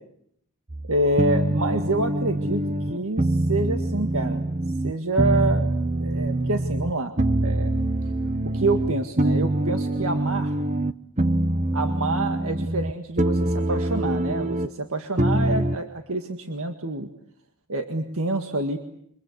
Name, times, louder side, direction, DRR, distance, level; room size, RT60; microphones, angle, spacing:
sound 1, 0.7-4.9 5.2-6.9 7.2-10.9 11.2-12.9 13.2-14.7 15.2-15.8, right 1 dB, 30° right, 1.0 m, -24 dB
voice 1, 0.9-2.6 2.9-4.4 4.8-5.7 6.0-7.1 7.4-7.7 8.5-10.6 11.7-17.1 17.7-18.8, right 2 dB, 65° right, 6 dB, 1.9 m, -27 dB
28.0 x 25.5 x 8.1 m, 0.71 s
head